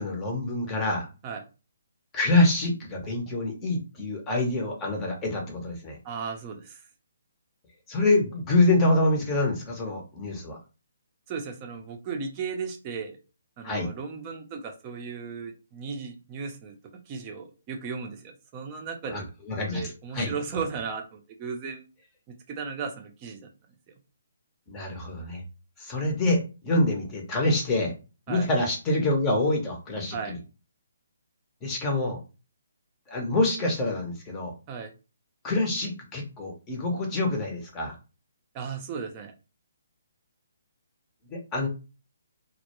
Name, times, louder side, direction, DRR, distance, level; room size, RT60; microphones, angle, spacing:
voice 1, 0.0-1.1 2.1-6.0 7.9-10.6 13.6-13.9 19.1-19.8 20.1-20.3 24.7-25.4 25.8-27.9 28.3-30.4 31.6-32.2 33.1-34.5 35.4-38.0 41.3-41.7, left 2 dB, 20° left, 1 dB, 0.7 m, -26 dB
voice 2, 6.0-6.8 11.3-13.2 13.6-19.3 19.7-21.8 22.5-23.5 23.9-24.0 28.3-28.5 30.1-30.4 34.7-34.9 38.5-39.3, right 5 dB, 30° right, 3 dB, 0.5 m, -36 dB
2.1 x 2.1 x 2.9 m, 0.31 s
figure-of-eight pair, 145°, 0 cm